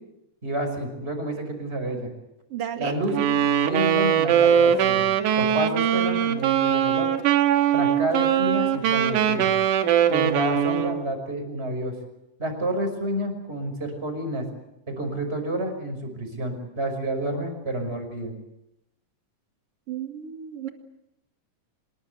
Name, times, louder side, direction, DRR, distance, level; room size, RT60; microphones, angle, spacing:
voice 1, 0.4-2.1 2.8-3.4 3.6-5.0 5.4-7.1 7.7-9.5 10.1-12.0 12.4-14.5 14.9-18.3, right 1 dB, 20° right, 6 dB, 5.6 m, -29 dB
voice 2, 2.5-2.9 19.9-20.7, right 9 dB, 50° right, 6 dB, 2.9 m, -33 dB
Wind instrument woodwind instrument, 3.1-11.1, right 9 dB, 80° right, 2.8 m, -21 dB
25.5 x 21.0 x 8.1 m, 0.86 s
omnidirectional pair, 3.7 m